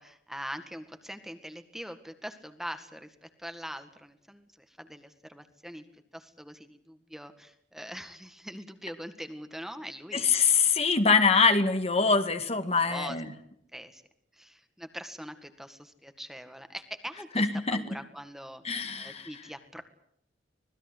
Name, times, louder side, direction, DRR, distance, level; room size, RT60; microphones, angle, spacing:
voice 1, 0.0-10.5 12.8-13.2 13.7-14.0 14.3-19.8, equal, ahead, 8 dB, 1.9 m, -43 dB
voice 2, 10.1-13.3 17.4-18.0 18.6-19.3, left 4 dB, 35° left, 8 dB, 1.9 m, -24 dB
25.5 x 19.5 x 8.0 m, 0.70 s
head